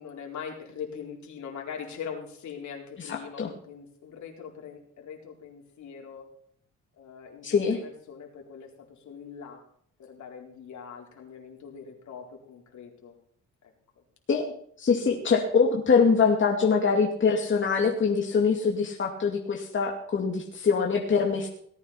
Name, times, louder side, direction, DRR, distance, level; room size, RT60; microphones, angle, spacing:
voice 1, 0.0-6.3 7.0-9.6 10.0-13.2, left 7 dB, 70° left, 0 dB, 4.4 m, -42 dB
voice 2, 7.4-7.8 14.3-14.5 14.8-21.5, left 5 dB, 40° left, 0 dB, 2.5 m, -23 dB
18.0 x 9.8 x 5.8 m, 0.63 s
cardioid pair, 90°, 30 cm